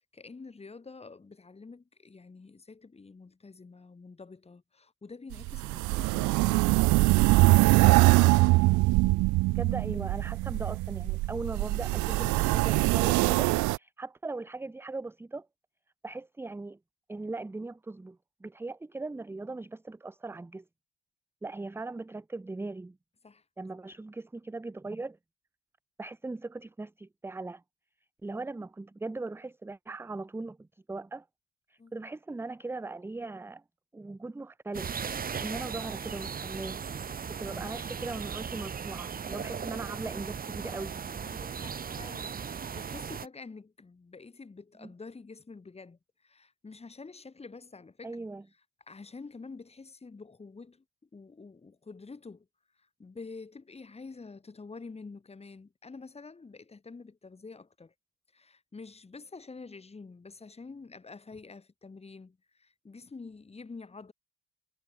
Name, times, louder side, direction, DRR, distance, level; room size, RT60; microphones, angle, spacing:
voice 1, 0.0-6.8 23.2-23.4 31.8-31.9 39.4-39.5 41.2-48.3 48.9-50.8 51.1-52.5 53.0-57.9 58.3-64.1, left 4 dB, 20° left, 5.5 m, -48 dB
sound 1, 5.3-13.8, right 22 dB, 80° right, 0.5 m, -23 dB
voice 2, 9.5-15.5 16.0-16.8 17.1-20.6 21.4-23.0 23.6-25.2 26.0-27.6 28.2-31.3 31.7-33.6 33.9-35.0 35.4-36.8 37.3-41.0 44.8-44.9 48.0-48.4, right 3 dB, 10° right, 0.7 m, -39 dB
sound 2, 34.7-43.3, right 6 dB, 30° right, 1.4 m, -37 dB
cardioid pair, 125°, 30 cm